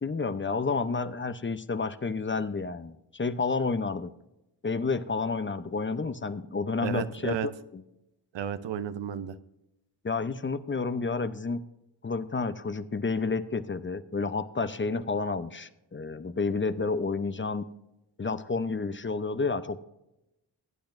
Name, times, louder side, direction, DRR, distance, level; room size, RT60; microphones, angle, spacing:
voice 1, 0.0-4.1 4.6-7.8 10.0-11.6 12.0-17.6 18.2-19.8, left 4 dB, 25° left, 12 dB, 0.7 m, -30 dB
voice 2, 6.8-7.5 8.3-9.4, right 9 dB, 80° right, 12 dB, 0.7 m, -32 dB
17.5 x 8.7 x 2.6 m, 0.92 s
supercardioid pair, 40°, 44 cm